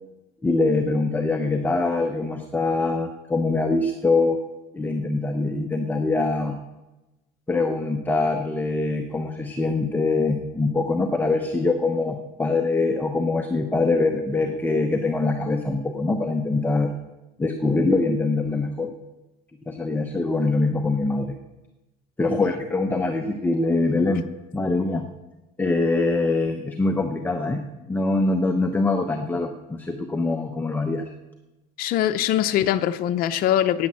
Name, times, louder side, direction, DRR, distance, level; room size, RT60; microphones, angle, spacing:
voice 1, 0.4-4.4 4.7-6.6 7.5-16.9 17.4-18.9 19.7-21.3 22.2-24.3 24.5-25.1 25.6-31.1, left 3 dB, 10° left, 5 dB, 0.8 m, -23 dB
voice 2, 31.8-33.9, left 11 dB, 55° left, 8 dB, 0.6 m, -22 dB
10.5 x 9.4 x 7.5 m, 1.1 s
cardioid pair, 125°, 18 cm